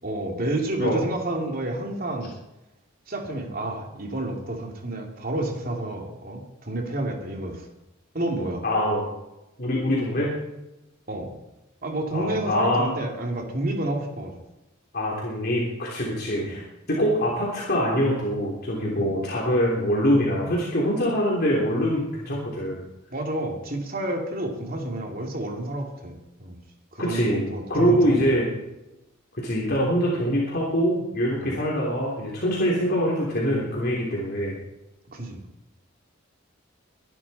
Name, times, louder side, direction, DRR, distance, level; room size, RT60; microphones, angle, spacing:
voice 1, 0.0-2.3 3.1-7.7 8.1-8.6 11.1-11.3 11.8-14.3 16.4-16.6 19.0-19.1 23.1-26.6 26.9-28.3 31.4-31.6 35.1-35.4, right 1 dB, 50° right, 1 dB, 3.0 m, -30 dB
voice 2, 8.6-9.1 9.6-10.3 12.1-12.9 14.9-22.8 27.0-28.5 29.3-34.6, equal, 55° left, -4 dB, 3.4 m, -24 dB
23.0 x 11.5 x 4.3 m, 0.96 s
head